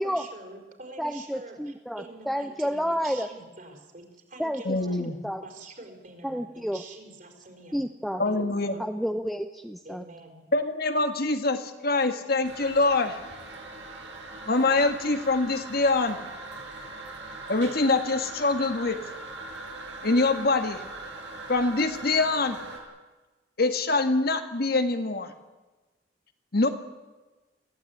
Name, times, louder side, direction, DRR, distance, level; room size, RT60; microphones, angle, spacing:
voice 1, 0.0-5.1 5.4-7.8 8.1-8.8 9.8-10.4, right 2 dB, 45° right, 3 dB, 4.8 m, -46 dB
voice 2, 1.0-3.3 4.4-5.4 6.2-6.8 7.7-8.2 8.8-10.0, equal, ahead, 6 dB, 0.7 m, -30 dB
voice 3, 4.7-5.2 8.2-8.8 10.5-13.2 14.5-16.2 17.5-19.0 20.0-20.8 21.5-22.6 23.6-25.3 26.5-26.7, left 3 dB, 55° left, 7 dB, 1.8 m, -24 dB
Toilet flush, 12.4-22.8, right 2 dB, 80° right, 5.7 m, -41 dB
24.0 x 15.5 x 9.4 m, 1.2 s
head